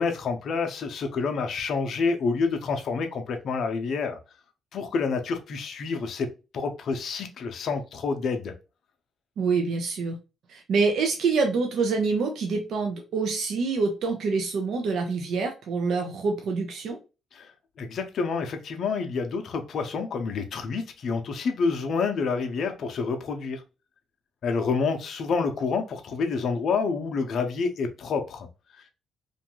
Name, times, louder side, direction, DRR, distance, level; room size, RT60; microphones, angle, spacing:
voice 1, 0.0-4.2 4.7-8.5 17.3-23.6 24.4-28.5 28.7-28.8, left 4 dB, 60° left, 0.5 m, -28 dB
voice 2, 9.4-10.2 10.5-17.0, right 4 dB, 70° right, 0.5 m, -26 dB
2.5 x 2.3 x 2.9 m
cardioid pair, 90°, 0 cm